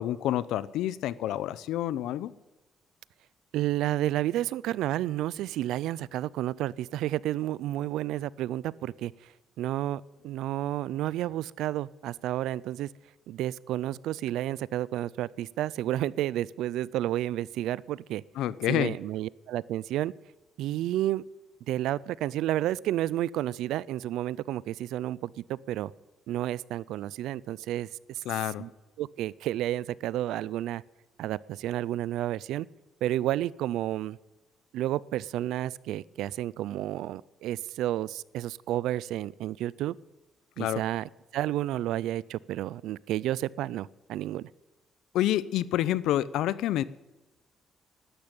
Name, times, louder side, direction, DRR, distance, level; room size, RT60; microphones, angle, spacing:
voice 1, 0.0-2.3 18.4-18.9 28.3-28.6 40.6-40.8 45.1-46.8, left 13 dB, 90° left, 18 dB, 0.6 m, -28 dB
voice 2, 3.5-9.1 9.6-12.9 13.3-18.2 18.7-20.1 20.6-21.2 21.7-25.9 26.3-28.2 28.6-28.7 29.0-30.8 31.2-32.7 33.0-34.2 34.7-39.9 40.6-44.5, right 13 dB, 90° right, 22 dB, 0.4 m, -31 dB
12.5 x 12.0 x 8.8 m, 1.1 s
cardioid pair, 90°, 0 cm